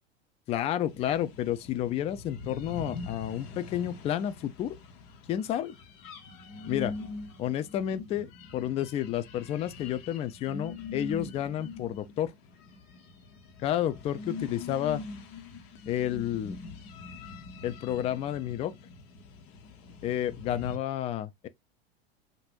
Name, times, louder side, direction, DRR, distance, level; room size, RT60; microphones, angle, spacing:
voice 1, 0.5-4.8 5.3-5.8 6.7-6.9 7.4-12.3 13.6-15.0 15.9-16.6 17.6-18.7 20.0-21.5, left 11 dB, 20° left, 0.4 m, -31 dB
sound 1, 0.9-20.8, left 3 dB, 45° left, 1.3 m, -43 dB
5.9 x 2.6 x 2.4 m
figure-of-eight pair, 80°, 31 cm